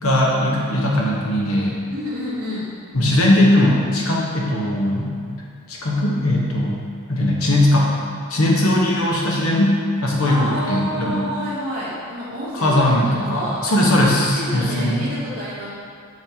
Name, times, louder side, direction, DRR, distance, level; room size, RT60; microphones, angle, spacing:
voice 1, 0.0-1.8 2.9-5.3 5.7-6.8 7.1-7.9 8.3-11.2 12.5-15.1, left 1 dB, 70° left, -3 dB, 1.0 m, -19 dB
voice 2, 1.9-2.7 10.2-13.7 14.3-15.7, equal, 40° right, -14 dB, 1.5 m, -29 dB
6.2 x 3.5 x 4.3 m, 2.3 s
head